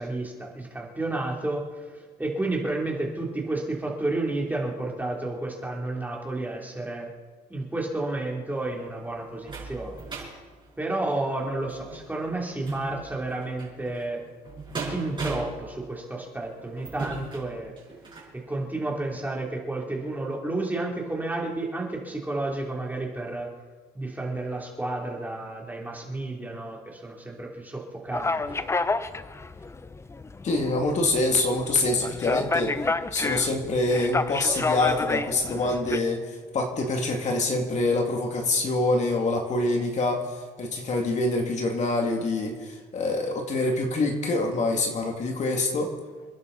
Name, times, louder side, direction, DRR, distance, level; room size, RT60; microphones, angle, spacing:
voice 1, 0.0-7.1 7.5-10.3 10.8-14.2 14.9-17.7 18.3-23.5 23.9-28.6, right 2 dB, 10° right, -2 dB, 3.2 m, -31 dB
sound 1, 8.5-18.4 18.9-19.0 19.4-19.5, right 3 dB, 30° right, 5.5 m, -39 dB
sound 2, 28.1-36.0, left 3 dB, 15° left, 0.6 m, -30 dB
voice 2, 30.4-32.8 33.1-46.0, left 2 dB, 45° left, 2 dB, 2.3 m, -25 dB
28.0 x 11.0 x 4.1 m, 1.5 s
cardioid pair, 110°, 17 cm